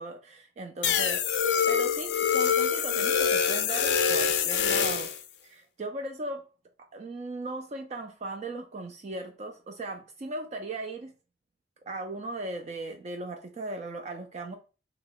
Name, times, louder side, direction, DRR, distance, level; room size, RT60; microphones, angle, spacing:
voice 1, 0.0-5.1 5.4-6.5 6.8-11.1 11.9-14.6, right 2 dB, 40° right, 0.3 m, -38 dB
sound 1, 0.8-5.2, left 7 dB, 80° left, 0.5 m, -25 dB
2.9 x 2.2 x 3.8 m
head